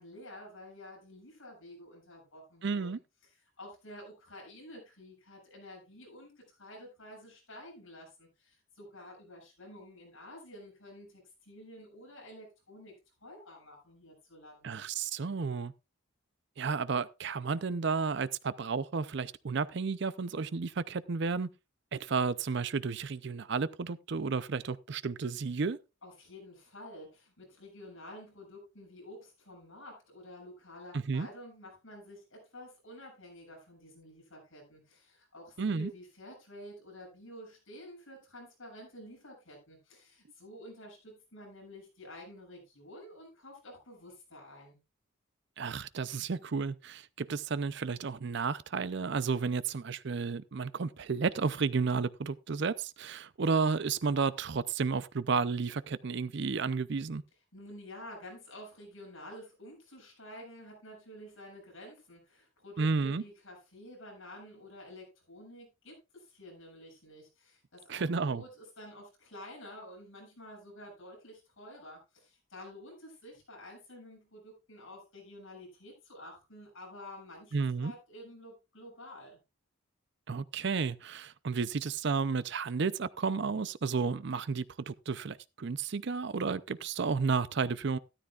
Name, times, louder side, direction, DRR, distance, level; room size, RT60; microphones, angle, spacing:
voice 1, 0.0-3.0 3.3-12.9 13.2-14.8 26.0-44.8 57.5-79.4, left 1 dB, 70° left, 7.3 m, -50 dB
voice 2, 2.6-3.0 14.6-15.7 16.6-21.5 21.9-25.8 30.9-31.3 35.6-35.9 45.6-57.2 62.8-63.2 67.9-68.4 77.5-77.9 80.3-88.0, right 5 dB, 55° right, 0.5 m, -32 dB
13.0 x 13.0 x 2.4 m
head